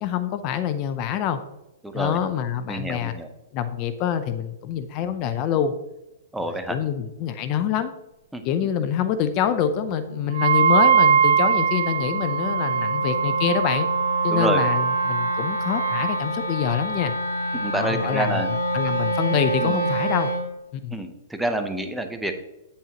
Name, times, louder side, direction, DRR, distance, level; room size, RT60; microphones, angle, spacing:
voice 1, 0.0-1.4 1.9-3.1 3.5-5.7 6.7-7.9 8.4-13.9 14.2-17.1 17.8-18.4 18.7-20.3 20.7-20.9, left 9 dB, 35° left, 10 dB, 0.5 m, -25 dB
voice 2, 1.8-2.2 2.7-3.3 6.3-6.8 8.3-8.5 14.3-14.6 17.5-18.5 19.6-19.8 20.9-22.3, right 1 dB, 5° right, 6 dB, 0.7 m, -28 dB
Wind instrument woodwind instrument, 8.9-20.5, equal, 75° left, 3.0 m, -29 dB
Wind instrument woodwind instrument 2, 10.3-16.2, right 7 dB, 70° right, 0.8 m, -22 dB
8.9 x 8.3 x 2.9 m, 0.96 s
hypercardioid pair, 155°, 0 cm